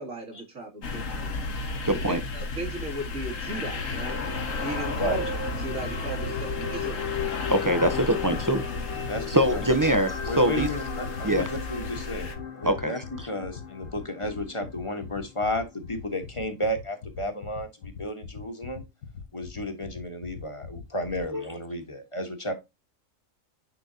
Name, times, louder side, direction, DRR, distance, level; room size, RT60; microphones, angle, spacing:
voice 1, 0.0-1.3 1.9-4.2 4.6-5.2 5.6-7.0, right 2 dB, 75° right, 2.9 m, -36 dB
sound 1, 0.8-12.4, left 3 dB, 70° left, 1.5 m, -33 dB
voice 2, 1.8-2.2 7.5-8.6 9.3-10.7 11.2-11.5 12.6-12.9 21.3-21.5, right 1 dB, 20° right, 0.5 m, -23 dB
sound 2, 3.1-15.4 15.7-15.9, left 5 dB, 55° left, 1.4 m, -37 dB
sound 3, 3.9-21.2, left 7 dB, 90° left, 1.9 m, -40 dB
voice 3, 5.0-5.3 9.1-9.6 10.3-12.3 12.6-13.0 13.3-18.8 19.3-22.5, left 1 dB, 25° left, 1.3 m, -32 dB
9.8 x 3.9 x 2.8 m
omnidirectional pair, 1.4 m